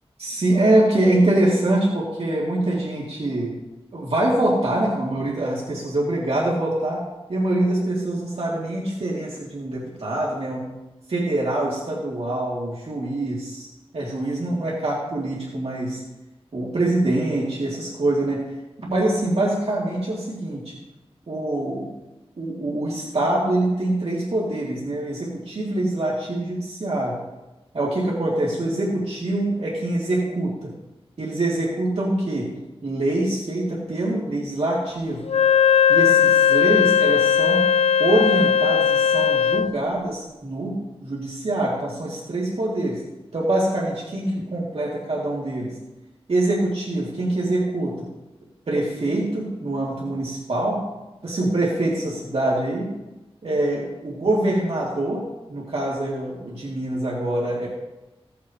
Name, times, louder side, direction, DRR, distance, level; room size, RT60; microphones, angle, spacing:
voice 1, 0.2-3.5 3.9-7.0 7.3-10.7 11.1-13.7 13.9-16.0 16.5-18.4 18.8-20.8 21.3-21.9 22.4-27.2 27.7-30.7 31.2-35.3 35.9-37.7 38.0-43.1 43.3-45.8 46.3-48.1 48.7-50.8 51.2-52.9 53.4-57.7, right 1 dB, 70° right, -5 dB, 2.4 m, -24 dB
Wind instrument woodwind instrument, 35.3-39.8, left 8 dB, 85° left, 0.4 m, -18 dB
16.5 x 8.4 x 3.0 m, 1.0 s
wide cardioid pair, 80°, 10 cm